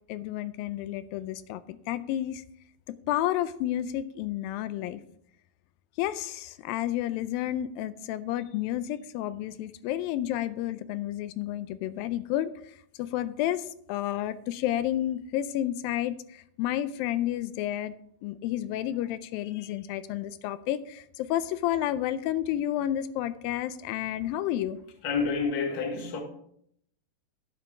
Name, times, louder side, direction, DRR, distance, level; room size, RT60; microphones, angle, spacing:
voice 1, 0.1-2.4 3.1-5.0 6.0-12.5 13.0-16.2 16.6-17.9 18.2-24.8, left 12 dB, 90° left, 2.4 m, -31 dB
voice 2, 25.0-26.2, left 5 dB, 45° left, 1.9 m, -28 dB
10.5 x 8.1 x 4.9 m
omnidirectional pair, 4.0 m